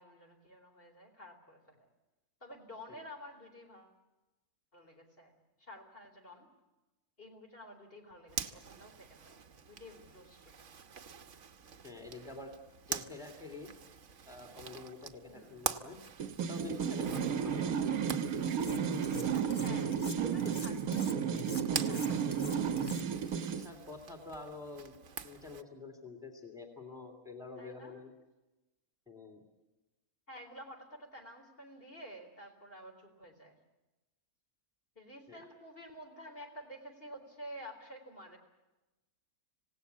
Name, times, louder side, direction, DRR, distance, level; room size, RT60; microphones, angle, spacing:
voice 1, 0.0-1.9 2.4-4.0 4.7-5.3 5.6-6.5 7.2-10.7 15.3-15.8 17.2-18.2 19.6-22.6 27.6-28.0 30.3-33.6 35.0-38.4, equal, 40° left, 2 dB, 4.1 m, -51 dB
Zipper (clothing), 8.3-25.6, right 7 dB, 55° right, 1.3 m, -45 dB
voice 2, 11.8-12.5 12.9-13.7 14.3-16.0 16.4-17.9 23.4-25.0 25.2-28.1 29.1-29.4 35.3-35.4, left 3 dB, ahead, 3 dB, 3.0 m, -47 dB
sound 1, 16.2-23.7, right 7 dB, 80° right, 1.4 m, -33 dB
Cutlery silverware, 18.6-19.2 19.5-23.3, left 2 dB, 25° left, 1.5 m, -47 dB
27.0 x 17.5 x 8.3 m, 1.1 s
omnidirectional pair, 1.5 m